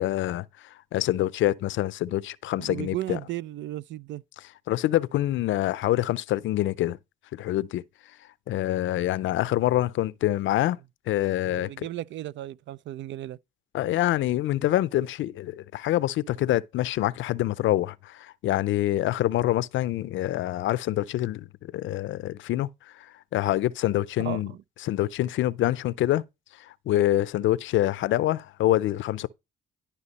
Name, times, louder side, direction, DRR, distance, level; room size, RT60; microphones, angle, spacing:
voice 1, 0.0-3.2 4.7-7.0 7.3-7.8 8.5-10.8 11.1-11.9 13.7-22.7 23.0-24.5 24.8-26.2 26.6-29.3, left 14 dB, 75° left, 0.5 m, -26 dB
voice 2, 2.6-4.2 11.5-13.4 24.2-24.6, right 14 dB, 70° right, 0.4 m, -35 dB
11.5 x 5.7 x 4.1 m
cardioid pair, 90°, 20 cm